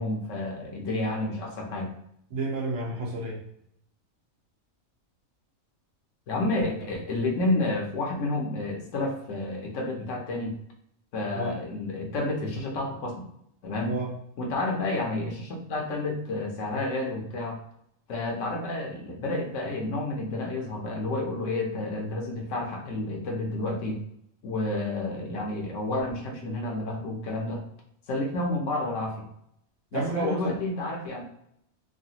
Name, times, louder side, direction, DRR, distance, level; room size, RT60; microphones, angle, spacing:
voice 1, 0.0-1.9 6.3-10.5 11.1-13.2 13.6-14.0 14.4-17.6 18.1-24.0 24.4-27.6 28.1-29.3 29.9-31.2, left 2 dB, 65° left, 1 dB, 1.0 m, -30 dB
voice 2, 2.3-3.4 11.3-11.6 13.8-14.1 29.9-30.5, right 2 dB, 65° right, -2 dB, 1.2 m, -30 dB
3.2 x 2.2 x 2.7 m, 0.73 s
omnidirectional pair, 1.4 m